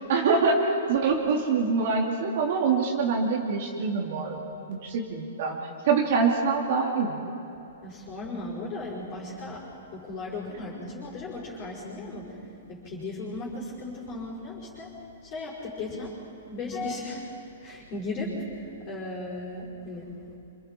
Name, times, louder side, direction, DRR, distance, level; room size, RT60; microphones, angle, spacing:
voice 1, 0.0-4.4 4.7-5.5 5.8-7.2, right 4 dB, 45° right, 0 dB, 2.7 m, -25 dB
voice 2, 7.8-20.4, left 2 dB, 25° left, -6 dB, 5.2 m, -36 dB
28.0 x 27.0 x 4.5 m, 2.9 s
hypercardioid pair, 170°, 0 cm